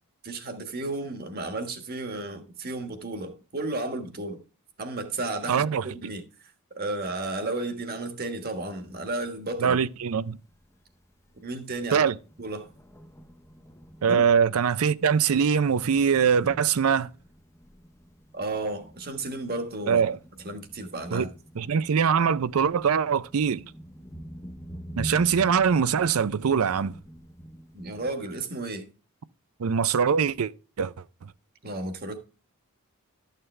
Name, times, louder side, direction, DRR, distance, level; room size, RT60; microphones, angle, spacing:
voice 1, 0.2-4.4 4.8-5.7 5.9-6.2 6.7-9.8 11.4-12.1 12.4-12.7 14.1-14.2 18.3-20.0 20.4-21.3 27.7-28.9 31.6-32.2, right 2 dB, 45° right, 1.4 m, -33 dB
voice 2, 5.5-5.9 9.6-10.4 11.9-12.1 14.0-17.1 19.9-20.2 21.1-21.3 21.6-23.7 25.0-26.9 29.6-30.5 30.8-30.9, right 6 dB, 75° right, 0.5 m, -23 dB
Thunder, 8.8-28.1, right 1 dB, 15° left, 0.7 m, -46 dB
12.5 x 6.7 x 3.2 m
head